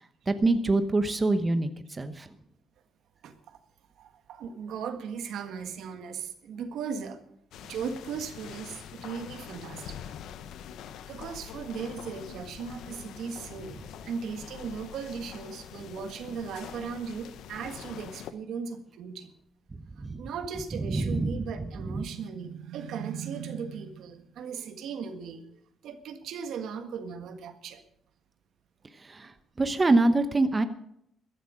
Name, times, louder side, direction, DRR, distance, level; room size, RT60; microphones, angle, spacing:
voice 1, 0.3-2.3 20.0-20.2 20.8-22.0 29.0-29.3 29.6-30.6, right 2 dB, 25° right, 10 dB, 0.9 m, -25 dB
voice 2, 3.2-3.6 4.0-7.2 7.6-10.0 11.1-13.8 14.0-19.3 20.2-25.4 25.8-27.8, right 6 dB, 80° right, 8 dB, 1.6 m, -37 dB
sound 1, 7.5-18.3, left 9 dB, 80° left, 0.8 m, -44 dB
14.5 x 10.0 x 6.3 m, 0.72 s
cardioid pair, 90°, 0 cm